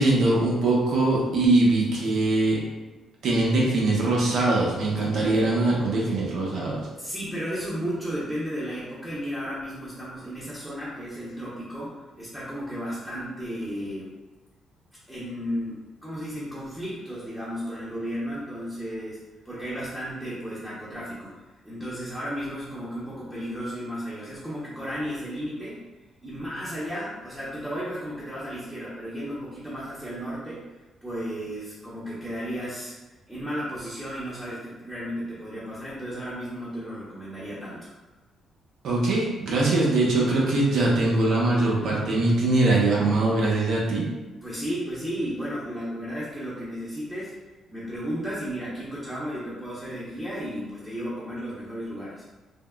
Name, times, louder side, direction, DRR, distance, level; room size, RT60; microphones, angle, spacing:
voice 1, 0.0-2.6 3.2-6.8 38.8-44.1, right 2 dB, 70° right, -4 dB, 0.6 m, -22 dB
voice 2, 7.0-14.1 15.1-25.8 26.2-30.6 31.0-32.9 33.3-37.9 44.4-47.3 47.7-52.2, equal, 10° right, -9 dB, 0.8 m, -34 dB
3.5 x 2.0 x 2.2 m, 1.1 s
cardioid pair, 90°, 0 cm